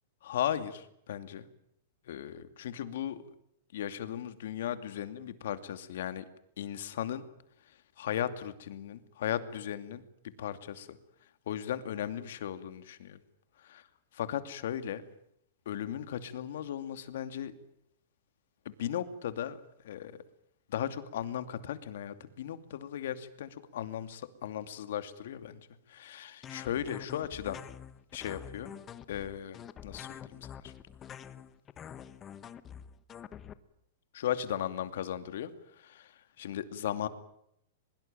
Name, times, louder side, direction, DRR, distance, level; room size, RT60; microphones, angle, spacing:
voice 1, 0.2-1.5 2.0-3.2 3.7-6.3 6.6-7.2 7.6-10.0 10.4-13.2 13.6-13.7 14.2-15.0 15.7-17.5 18.6-19.6 19.8-20.2 20.7-25.6 25.9-27.6 28.1-28.8 29.1-30.7 34.1-37.1, left 10 dB, 70° left, 11 dB, 2.5 m, -37 dB
sound 1, 26.4-33.5, left 9 dB, 20° left, 1.2 m, -46 dB
23.0 x 22.5 x 9.1 m, 0.74 s
supercardioid pair, 160°, 0 cm